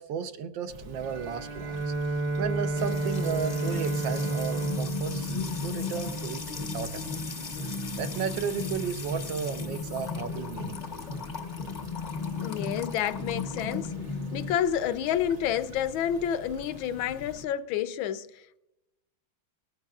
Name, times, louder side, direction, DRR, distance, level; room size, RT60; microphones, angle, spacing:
voice 1, 0.0-7.2 8.0-11.0, right 7 dB, 75° right, 1.5 m, -34 dB
Stream / Trickle dribble, 0.7-17.4, equal, 90° right, 2.4 m, -47 dB
Bowed string instrument, 0.9-6.5, right 2 dB, 35° right, 1.1 m, -31 dB
Music / Water tap faucet / Trickle dribble, 2.8-14.5, left 4 dB, 50° left, 0.5 m, -35 dB
voice 2, 12.4-13.9 14.3-18.6, left 9 dB, 80° left, 1.4 m, -29 dB
19.0 x 13.0 x 2.4 m
omnidirectional pair, 2.2 m